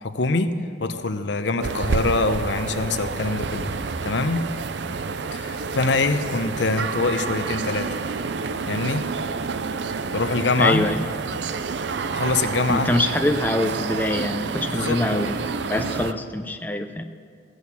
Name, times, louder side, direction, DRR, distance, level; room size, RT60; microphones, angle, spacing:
voice 1, 0.0-0.5 0.8-3.7 4.0-4.5 5.3-8.0 8.7-9.1 10.1-10.9 12.1-12.9 14.7-15.0, left 3 dB, 75° left, 9 dB, 0.8 m, -24 dB
sound 1, 1.6-16.1, right 5 dB, 70° right, 0.5 m, -29 dB
voice 2, 10.6-11.0 12.7-15.4 15.7-17.0, left 1 dB, 10° left, 6 dB, 0.4 m, -24 dB
16.0 x 6.4 x 8.4 m, 2.1 s
head